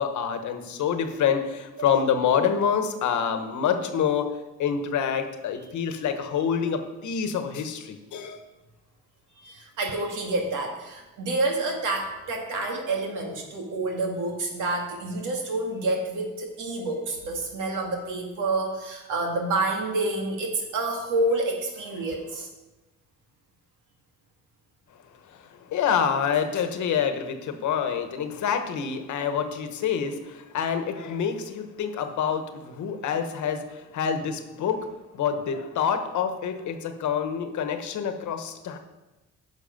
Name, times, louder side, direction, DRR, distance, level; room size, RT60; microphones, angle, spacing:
voice 1, 0.0-8.4 25.3-34.9 35.1-38.8, left 7 dB, 75° left, 8 dB, 1.1 m, -27 dB
voice 2, 9.4-22.5, right 2 dB, 85° right, 1 dB, 2.1 m, -28 dB
10.5 x 6.3 x 5.2 m, 1.1 s
cardioid pair, 90°, 30 cm